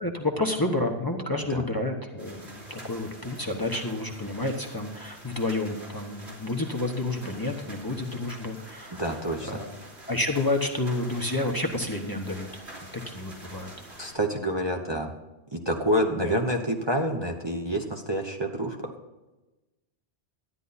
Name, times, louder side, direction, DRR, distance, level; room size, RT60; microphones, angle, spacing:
voice 1, 0.0-9.0 9.4-9.7 10.1-12.6 13.1-14.0 16.1-16.4, left 2 dB, 20° left, 2 dB, 1.2 m, -30 dB
sound 1, 2.2-14.1, right 1 dB, 80° right, 3.6 m, -46 dB
voice 2, 9.0-9.6 14.0-15.1 15.5-18.9, equal, 25° right, 0 dB, 1.0 m, -28 dB
13.0 x 10.0 x 4.2 m, 1.1 s
omnidirectional pair, 1.1 m